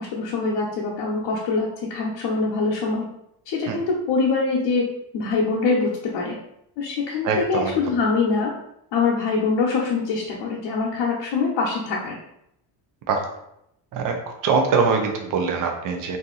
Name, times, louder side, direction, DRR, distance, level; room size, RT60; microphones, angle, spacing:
voice 1, 0.0-3.0 3.5-4.8 5.1-6.4 6.8-8.5 8.9-12.2, left 4 dB, 75° left, -4 dB, 0.8 m, -24 dB
voice 2, 7.2-7.8 13.1-13.2 13.9-14.2 14.4-16.2, right 4 dB, 45° right, 3 dB, 0.5 m, -22 dB
2.8 x 2.5 x 3.7 m, 0.78 s
cardioid pair, 160°, 44 cm